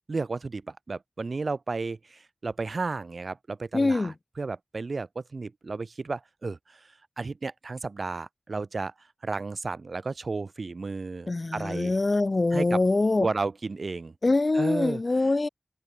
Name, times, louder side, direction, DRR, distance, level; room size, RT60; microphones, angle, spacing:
voice 1, 0.1-8.9 9.2-12.0 12.5-12.8 13.2-14.1 14.5-15.0, right 3 dB, 80° right, 5.8 m, -33 dB
voice 2, 3.7-4.1 11.3-13.3 14.2-15.5, left 2 dB, 55° left, 1.8 m, -24 dB
wide cardioid pair, 70°, 0 cm